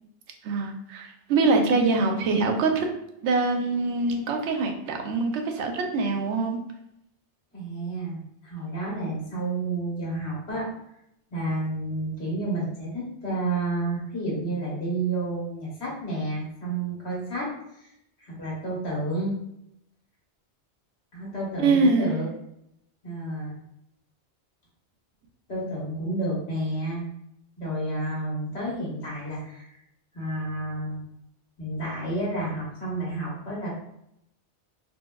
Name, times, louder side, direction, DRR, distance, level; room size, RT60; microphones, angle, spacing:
voice 1, 0.4-2.9 3.2-6.6 21.6-22.2, right 3 dB, 80° right, 3 dB, 0.9 m, -24 dB
voice 2, 7.5-10.7 11.3-17.9 18.2-19.3 21.1-22.3 23.0-23.5 25.5-27.0 27.6-29.8 30.1-31.0 31.6-33.8, right 2 dB, 70° left, -5 dB, 1.5 m, -30 dB
4.3 x 2.2 x 2.3 m, 0.79 s
omnidirectional pair, 1.2 m